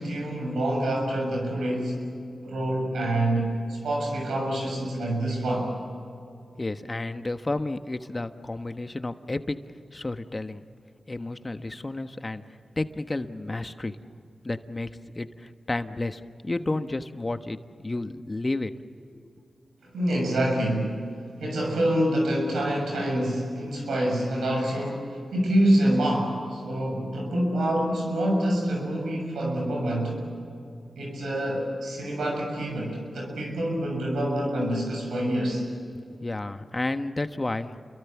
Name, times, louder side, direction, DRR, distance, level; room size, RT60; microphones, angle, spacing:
voice 1, 0.0-2.1 2.4-5.7 19.8-21.0 21.4-30.2 31.0-35.6, right 1 dB, 90° right, 0 dB, 7.3 m, -26 dB
voice 2, 6.6-9.6 9.9-10.6 11.1-14.0 14.4-14.9 15.1-17.6 17.8-18.7 19.1-19.3 35.9-37.8, left 2 dB, 35° left, 9 dB, 1.3 m, -31 dB
29.0 x 23.0 x 7.3 m, 2.5 s
cardioid pair, 45°, 0 cm